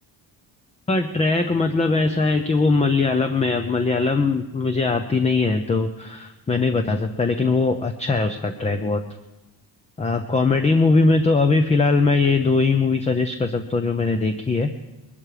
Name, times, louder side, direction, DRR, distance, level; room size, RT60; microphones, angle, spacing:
voice 1, 0.9-9.0 10.0-14.7, left 3 dB, 15° left, 7 dB, 0.7 m, -20 dB
21.5 x 12.5 x 4.9 m, 1.1 s
cardioid pair, 140°, 41 cm